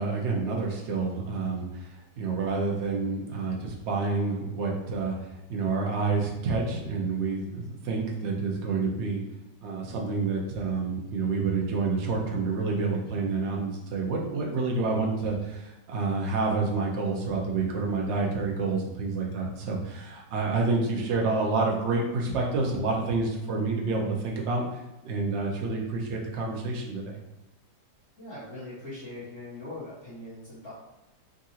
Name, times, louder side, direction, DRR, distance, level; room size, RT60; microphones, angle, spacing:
voice 1, 0.0-5.2 5.5-9.2 9.6-24.6 25.0-27.2, right 3 dB, 75° right, -1 dB, 0.6 m, -28 dB
voice 2, 28.2-30.7, left 2 dB, 40° left, -13 dB, 1.5 m, -41 dB
3.7 x 2.4 x 2.8 m, 1.0 s
omnidirectional pair, 1.9 m